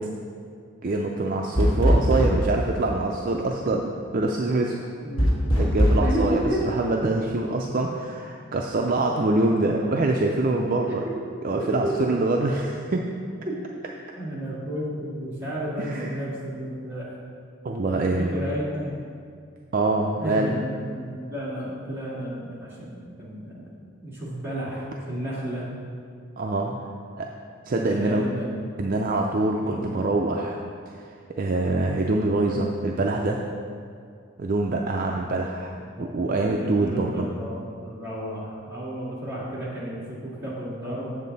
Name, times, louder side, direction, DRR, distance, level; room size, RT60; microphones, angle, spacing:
voice 1, 0.8-4.7 5.2-11.0 11.4-13.1 15.8-16.2 17.6-18.3 19.7-20.5 26.4-26.8 27.2-27.3 27.7-28.2 28.8-30.9 31.4-33.4 34.4-37.3, right 2 dB, 40° right, 1 dB, 0.4 m, -25 dB
sound 1, 1.5-2.5 5.2-6.1, equal, 85° left, 1.5 m, -20 dB
voice 2, 5.0-5.3 6.0-6.6 11.0-11.2 11.6-12.0 13.5-13.7 14.2-17.2 18.2-18.9 20.2-25.7 27.7-28.5 29.6-29.9 35.9-41.2, equal, 10° right, -9 dB, 2.2 m, -32 dB
7.4 x 7.3 x 4.0 m, 2.2 s
head